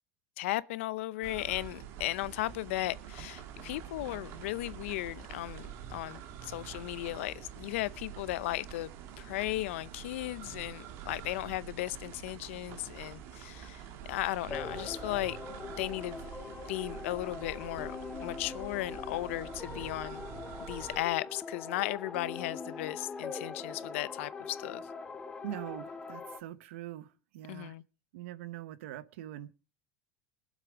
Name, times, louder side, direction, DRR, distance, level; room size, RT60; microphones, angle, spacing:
voice 1, 0.4-15.4 15.7-16.2 16.7-18.0 18.2-20.2 20.6-24.9 27.5-27.8, left 17 dB, 80° left, 0.7 m, -36 dB
sound 1, 1.2-21.0, right 9 dB, 40° right, 1.6 m, -46 dB
sound 2, 14.5-26.4, left 4 dB, 10° left, 0.9 m, -42 dB
voice 2, 25.4-27.1 27.3-27.7 28.1-29.5, right 13 dB, 80° right, 1.0 m, -42 dB
21.0 x 7.5 x 5.1 m
supercardioid pair, 175°, 7 cm